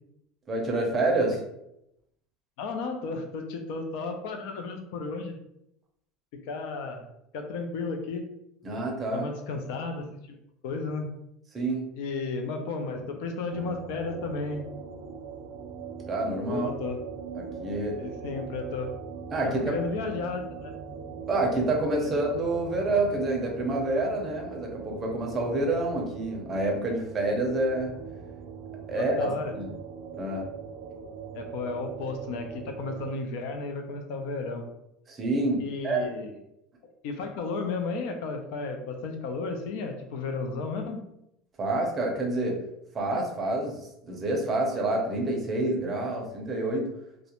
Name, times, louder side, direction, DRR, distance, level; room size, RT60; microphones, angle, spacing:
voice 1, 0.5-1.3 8.6-9.3 11.5-11.9 16.1-16.7 17.3-18.0 19.3-19.7 21.3-27.9 28.9-29.7 30.1-30.4 35.1-36.1 41.6-42.6 42.9-43.8 44.1-46.9, right 2 dB, 20° right, 0 dB, 0.6 m, -28 dB
voice 2, 2.6-5.4 6.4-7.1 7.3-8.2 9.1-10.4 10.6-11.1 12.0-14.6 16.4-17.0 18.0-18.9 19.4-20.8 28.9-29.5 30.2-30.4 31.3-34.7 35.6-36.4 37.0-41.0, left 3 dB, 70° left, 4 dB, 0.4 m, -33 dB
sound 1, 13.5-33.1, right 6 dB, 65° right, 0.3 m, -41 dB
2.4 x 2.1 x 2.9 m, 0.81 s
cardioid pair, 150°, 0 cm